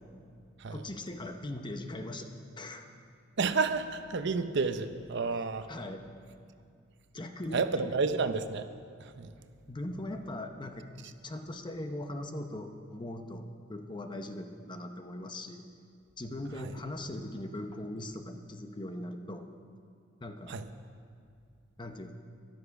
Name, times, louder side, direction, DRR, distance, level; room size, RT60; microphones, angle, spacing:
voice 1, 0.7-2.3 2.6-2.9 5.7-6.0 7.1-7.9 9.7-10.9 11.2-15.6 16.2-19.5 20.2-20.6 21.8-22.1, left 1 dB, 25° left, 6 dB, 0.8 m, -40 dB
voice 2, 3.4-5.7 7.5-8.7 9.0-9.3 20.5-20.7, right 4 dB, 60° right, 10 dB, 0.7 m, -30 dB
13.0 x 12.0 x 5.9 m, 2.3 s
head